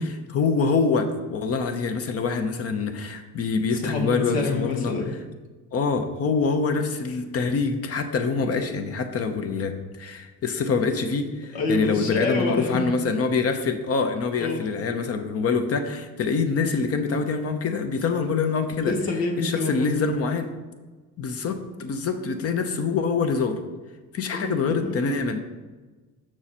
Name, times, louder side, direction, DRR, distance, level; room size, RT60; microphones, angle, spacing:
voice 1, 0.3-4.9 5.7-18.9 19.4-20.5 21.2-23.6 24.1-25.4, left 4 dB, 45° left, 8 dB, 0.7 m, -25 dB
voice 2, 3.7-5.1 11.5-12.8 14.4-14.6 18.8-20.0 24.3-25.0, left 3 dB, 90° left, 2 dB, 1.4 m, -27 dB
6.4 x 6.1 x 4.2 m, 1.3 s
cardioid pair, 140°, 34 cm